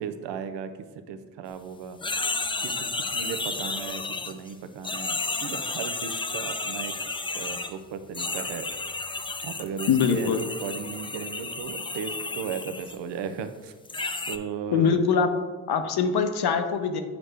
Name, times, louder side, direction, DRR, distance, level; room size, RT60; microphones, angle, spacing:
voice 1, 0.0-0.7 1.1-2.0 2.6-6.9 7.3-8.7 9.4-10.3 10.6-13.7 14.3-15.0, right 7 dB, 75° right, 10 dB, 0.6 m, -36 dB
sound 1, 2.0-4.5 4.8-7.7 8.1-13.0 13.9-14.4, left 3 dB, 10° left, 0.4 m, -32 dB
voice 2, 9.9-10.4 14.7-15.3 15.7-17.0, left 6 dB, 60° left, 7 dB, 0.7 m, -23 dB
6.0 x 5.1 x 3.3 m, 1.4 s
supercardioid pair, 45°, 42 cm